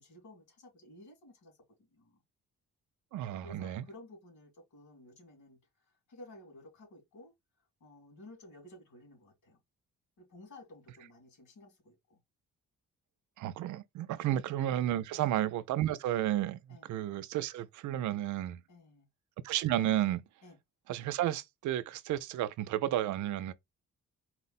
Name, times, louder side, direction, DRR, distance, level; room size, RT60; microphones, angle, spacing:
voice 1, 0.0-2.2 3.4-7.3 7.8-9.6 10.2-12.2 14.2-14.4 15.1-15.3 16.7-16.9 18.7-19.1 20.4-20.6, left 1 dB, 75° left, 2.9 m, -54 dB
voice 2, 3.1-3.8 13.4-16.6 16.9-18.6 19.4-20.2 20.9-23.5, right 12 dB, 75° right, 0.5 m, -32 dB
4.3 x 2.1 x 4.0 m
cardioid pair, 90°, 30 cm